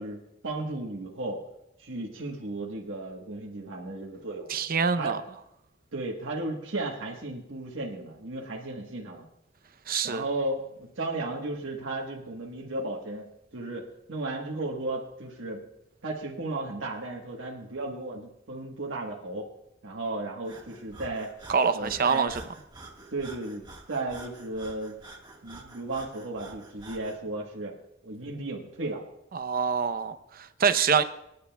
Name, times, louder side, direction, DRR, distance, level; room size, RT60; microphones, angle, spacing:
voice 1, 0.0-1.4 1.8-4.5 5.0-5.2 5.9-9.2 10.0-15.6 16.0-19.5 19.8-21.3 21.7-22.3 23.1-25.0 25.4-27.7 28.0-29.0, right 2 dB, 90° right, -2 dB, 1.3 m, -34 dB
voice 2, 4.5-5.2 9.9-10.2 21.5-22.4 29.3-31.0, right 6 dB, 50° right, 11 dB, 0.7 m, -25 dB
Breathing, 20.4-27.2, right 2 dB, 25° right, 1.5 m, -48 dB
27.0 x 9.6 x 2.3 m, 0.84 s
head